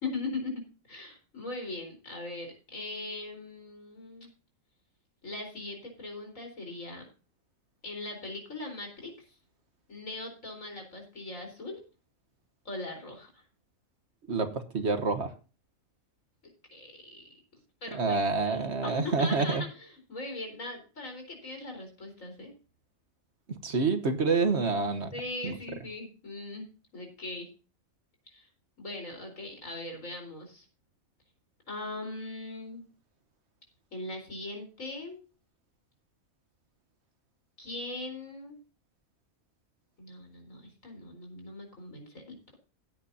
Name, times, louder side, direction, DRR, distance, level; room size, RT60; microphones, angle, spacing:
voice 1, 0.0-4.3 5.2-7.1 7.8-9.4 9.9-11.8 12.6-13.4 16.4-17.2 17.8-22.5 25.1-27.5 28.3-28.5 28.8-30.7 31.7-32.8 33.9-35.2 37.6-38.6 40.0-42.6, left 2 dB, 70° left, 3 dB, 4.6 m, -40 dB
voice 2, 14.3-15.3 17.9-19.6 23.6-25.1 25.4-25.5, right 4 dB, 55° right, 7 dB, 1.4 m, -27 dB
16.0 x 9.0 x 2.8 m, 0.34 s
omnidirectional pair, 1.4 m